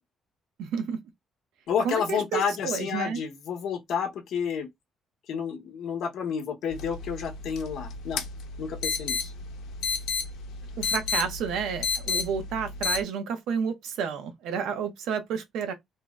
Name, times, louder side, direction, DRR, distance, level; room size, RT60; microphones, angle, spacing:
voice 1, 0.6-1.0 1.8-3.2 10.8-15.7, right 6 dB, 85° right, 0.7 m, -30 dB
voice 2, 1.7-4.7 5.3-8.2 8.6-9.3, left 7 dB, 60° left, 0.8 m, -30 dB
sound 1, 6.7-13.0, left 5 dB, 90° left, 0.7 m, -32 dB
2.7 x 2.0 x 3.3 m
cardioid pair, 180°, 0 cm